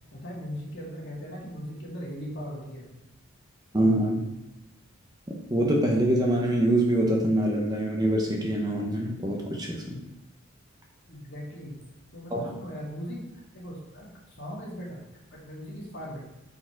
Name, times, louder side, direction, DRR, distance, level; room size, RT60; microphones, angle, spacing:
voice 1, 0.1-2.9 11.1-11.8 12.1-14.1 14.4-15.0 15.3-16.2, equal, 55° left, -4 dB, 2.1 m, -39 dB
voice 2, 3.7-4.2 5.5-10.0 12.3-12.5, right 1 dB, 20° right, 0 dB, 0.9 m, -24 dB
6.6 x 4.8 x 4.4 m, 0.93 s
head